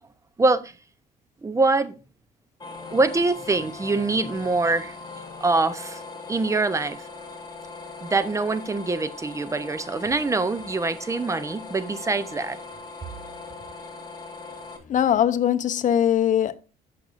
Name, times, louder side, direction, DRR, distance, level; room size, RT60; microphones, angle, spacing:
voice 1, 0.4-0.7 1.4-1.9 2.9-5.0 5.4-6.0 6.3-7.0 8.0-12.6, right 3 dB, 20° right, 0.7 m, -24 dB
sound 1, 2.6-14.8, left 3 dB, 25° left, 1.7 m, -40 dB
voice 2, 14.9-16.6, left 10 dB, 50° left, 0.7 m, -21 dB
14.0 x 5.9 x 2.5 m
cardioid pair, 110°, 17 cm